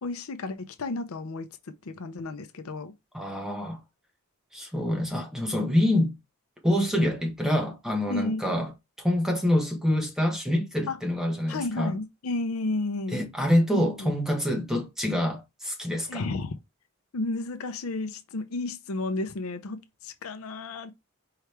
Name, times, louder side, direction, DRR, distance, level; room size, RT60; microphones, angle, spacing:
voice 1, 0.0-2.9 8.1-8.6 10.9-11.0 11.5-13.2 13.7-14.1 16.1-16.6 17.1-20.9, left 2 dB, 80° left, 0.6 m, -32 dB
voice 2, 3.1-3.8 4.5-6.1 6.6-8.7 9.0-11.9 13.1-16.2, left 1 dB, ahead, 1.1 m, -26 dB
4.7 x 3.1 x 3.3 m
head